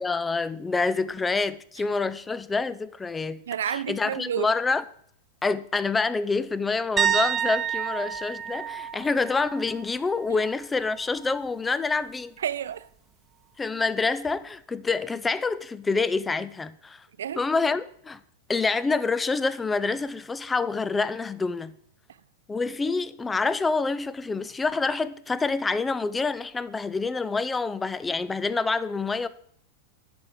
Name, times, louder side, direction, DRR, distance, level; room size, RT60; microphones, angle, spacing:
voice 1, 0.0-3.4 3.7-4.8 5.4-12.3 13.6-17.0 17.4-18.2 18.5-21.7 22.5-29.3, left 4 dB, 15° left, 0.4 m, -27 dB
voice 2, 3.5-4.5 10.3-10.4 12.4-12.9 17.2-17.4, right 9 dB, 65° right, 0.3 m, -30 dB
sound 1, 7.0-10.7 11.0-11.4 14.3-14.4, right 9 dB, 20° right, 0.9 m, -29 dB
10.5 x 4.3 x 4.9 m
figure-of-eight pair, 90°, 0 cm